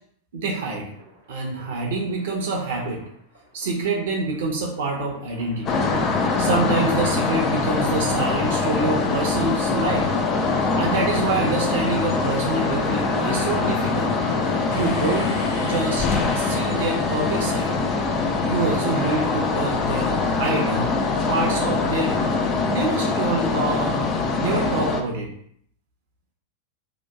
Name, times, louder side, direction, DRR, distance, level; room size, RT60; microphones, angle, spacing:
voice 1, 0.3-0.9 1.3-3.0 3.5-5.8 6.4-10.1 10.8-14.1 14.7-16.1 16.3-17.8 18.4-20.9 21.3-22.2 22.7-24.0 24.4-25.3, right 3 dB, 55° right, -1 dB, 0.5 m, -26 dB
sound 1, 0.9-19.3, equal, 85° left, 1.3 m, -39 dB
sound 2, 5.7-25.0, left 4 dB, 30° left, 0.3 m, -23 dB
sound 3, 14.7-18.5, left 1 dB, 50° left, 0.9 m, -38 dB
2.8 x 2.1 x 2.2 m, 0.64 s
figure-of-eight pair, 90°, 0 cm